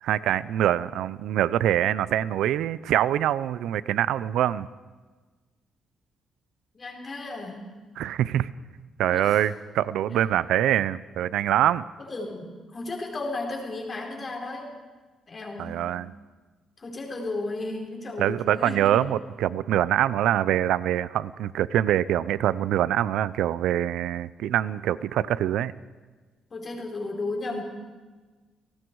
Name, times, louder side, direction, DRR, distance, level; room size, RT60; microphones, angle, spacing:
voice 1, 0.0-4.7 8.0-8.5 9.0-11.8 15.6-16.1 18.2-25.7, right 11 dB, 85° right, 18 dB, 0.6 m, -24 dB
voice 2, 6.7-7.7 9.0-9.5 10.1-10.2 12.0-14.7 15.3-15.9 16.8-19.0 26.5-27.6, left 2 dB, 30° left, 1 dB, 4.6 m, -34 dB
30.0 x 18.5 x 4.8 m, 1.3 s
cardioid pair, 135°, 0 cm